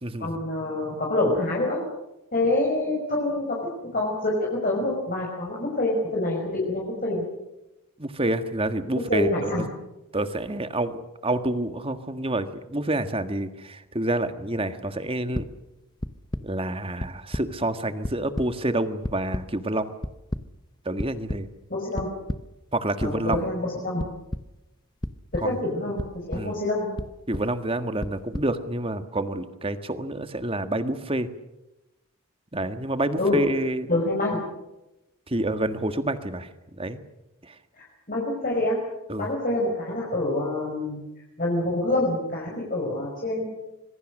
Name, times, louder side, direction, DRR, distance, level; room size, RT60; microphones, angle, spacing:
voice 1, 0.2-1.8 2.3-3.6 3.9-7.2 9.1-9.6 21.7-22.1 23.0-24.1 25.3-27.0 33.2-33.4 33.9-34.4 37.8-38.8 39.2-41.0 41.4-43.5, left 2 dB, 40° left, -3 dB, 5.6 m, -26 dB
voice 2, 8.0-9.6 10.1-15.4 16.4-19.9 20.8-21.5 22.7-23.4 25.4-25.6 26.3-26.6 27.3-31.3 32.5-33.9 35.3-36.5 36.8-37.0 37.4-37.5 39.1-39.3, right 1 dB, 25° right, 9 dB, 1.6 m, -28 dB
sound 1, 15.3-15.5 16.0-16.4 17.0-17.4 17.8-18.5 19.0-19.4 20.0-20.4 21.0-21.4 22.0-22.4 23.0-23.4 24.0-24.4 25.0-25.4 26.0-26.4 27.0-27.4 28.0-28.4, left 1 dB, 20° left, 0.9 m, -30 dB
26.0 x 22.0 x 6.6 m, 0.97 s
head